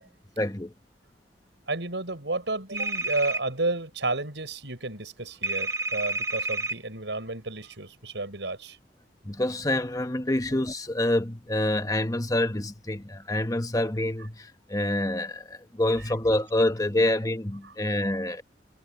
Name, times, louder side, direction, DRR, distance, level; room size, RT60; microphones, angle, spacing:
voice 1, 0.4-0.7 9.2-18.4, left 1 dB, 20° left, 1.1 m, -27 dB
voice 2, 1.7-8.8, right 2 dB, 90° right, 5.5 m, -31 dB
sound 1, 2.7-3.4 5.4-6.8, right 3 dB, 15° right, 0.5 m, -29 dB
head